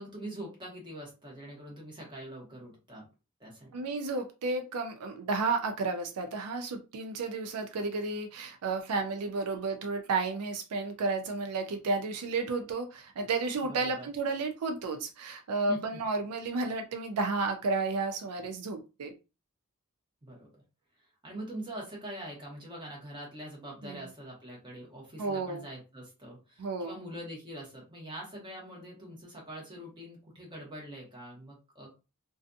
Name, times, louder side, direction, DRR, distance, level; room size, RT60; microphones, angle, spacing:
voice 1, 0.0-3.1 3.4-3.7 13.6-14.1 15.7-16.0 20.2-20.6 21.2-31.9, right 1 dB, 20° right, -3 dB, 1.0 m, -43 dB
voice 2, 3.7-19.1 23.9-24.1 25.2-25.7 26.6-27.0, right 3 dB, 85° right, 5 dB, 0.4 m, -32 dB
2.4 x 2.3 x 2.6 m, 0.30 s
head